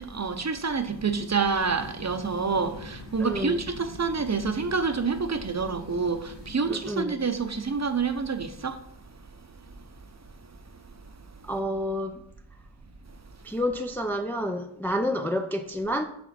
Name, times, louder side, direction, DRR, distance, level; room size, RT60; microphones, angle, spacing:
voice 1, 0.0-8.8, right 5 dB, 35° right, 0.7 m, -28 dB
sound 1, 1.6-6.5, left 2 dB, 55° left, 1.2 m, -45 dB
voice 2, 3.2-3.6 6.7-7.2 11.4-12.2 13.4-16.1, equal, 5° left, 0.4 m, -29 dB
6.0 x 5.7 x 4.2 m
wide cardioid pair, 55°, 49 cm